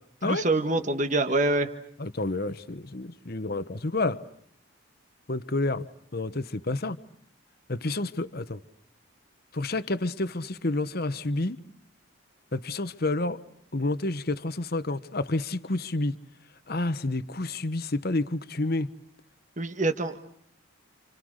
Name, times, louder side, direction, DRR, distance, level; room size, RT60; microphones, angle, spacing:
voice 1, 0.2-1.7 19.6-20.2, right 2 dB, 35° right, 1.5 m, -25 dB
voice 2, 2.0-4.2 5.3-5.9 6.1-7.0 7.7-8.6 9.5-11.6 12.5-13.4 13.7-16.1 16.7-18.9, left 2 dB, 45° left, 1.1 m, -29 dB
29.5 x 28.5 x 6.6 m
head